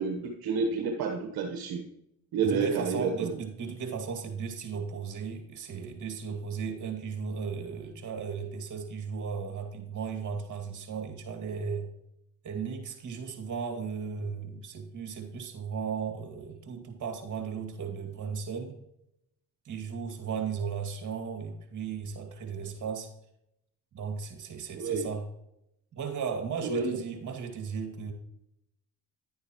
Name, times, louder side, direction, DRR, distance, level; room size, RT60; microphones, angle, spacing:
voice 1, 0.0-1.8 2.3-3.4 24.7-25.1 26.6-27.0, right 5 dB, 75° right, 3 dB, 1.2 m, -29 dB
voice 2, 2.4-11.9 12.4-18.7 19.6-23.1 23.9-25.3 25.9-28.1, right 6 dB, 55° right, 4 dB, 2.3 m, -36 dB
11.0 x 8.8 x 3.0 m, 0.81 s
cardioid pair, 85°, 37 cm